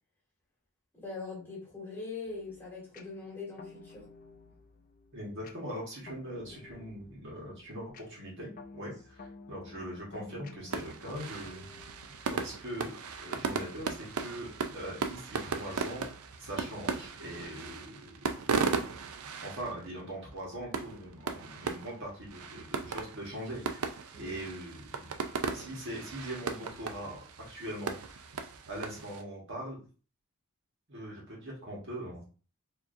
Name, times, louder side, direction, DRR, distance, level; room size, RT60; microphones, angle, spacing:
voice 1, 0.9-4.0 24.1-24.4, left 4 dB, 10° left, -5 dB, 1.9 m, -42 dB
sound 1, 2.3-12.9, left 3 dB, 40° left, 0.4 m, -53 dB
voice 2, 5.1-11.7 12.3-12.9 13.2-16.1 16.4-18.1 19.4-23.9 24.2-25.1 25.5-28.2 28.7-29.8 30.9-32.2, right 1 dB, 55° right, -4 dB, 1.5 m, -41 dB
sound 2, 10.7-29.2, right 5 dB, 75° right, 0.5 m, -37 dB
4.6 x 2.9 x 2.6 m, 0.37 s
head